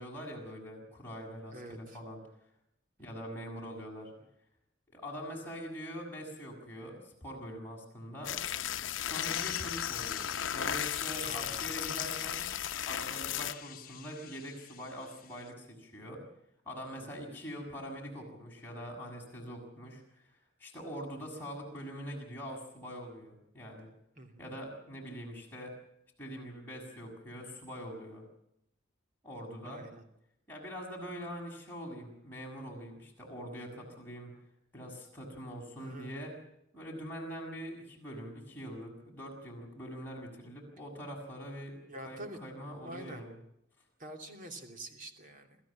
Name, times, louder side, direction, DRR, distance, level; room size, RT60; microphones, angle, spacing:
voice 1, 0.0-2.2 3.0-4.1 4.9-8.3 9.0-12.5 12.9-16.2 16.6-20.3 20.6-23.9 24.4-25.7 26.2-28.2 29.2-29.8 30.5-34.3 34.7-36.3 36.7-41.8 42.0-43.4, equal, 10° left, -3 dB, 6.8 m, -43 dB
voice 2, 1.5-2.0 11.2-11.6 16.9-17.2 24.2-24.4 29.6-30.0 35.8-36.4 41.9-42.4 42.8-43.3 44.0-45.6, right 1 dB, 40° right, 4 dB, 2.9 m, -46 dB
sound 1, 8.2-13.5, left 9 dB, 75° left, 0.8 m, -35 dB
sound 2, 9.1-15.5, left 11 dB, 45° left, 1.2 m, -45 dB
27.0 x 14.5 x 7.6 m, 0.79 s
head